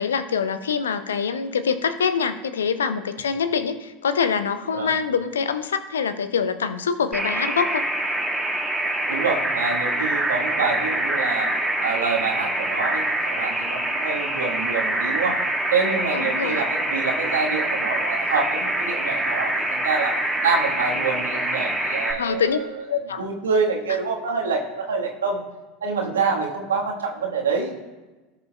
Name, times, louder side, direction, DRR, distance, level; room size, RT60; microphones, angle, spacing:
voice 1, 0.0-7.9 16.1-16.6 22.2-22.6 22.9-23.2, left 6 dB, 75° left, 12 dB, 0.6 m, -24 dB
sound 1, 7.1-22.1, right 1 dB, ahead, 2.0 m, -25 dB
voice 2, 9.1-11.5 11.8-15.4 15.7-20.1 20.4-22.8 23.2-25.4 25.8-27.7, right 4 dB, 75° right, 0 dB, 1.6 m, -26 dB
17.5 x 6.9 x 2.4 m, 1.2 s
figure-of-eight pair, 75°, 0 cm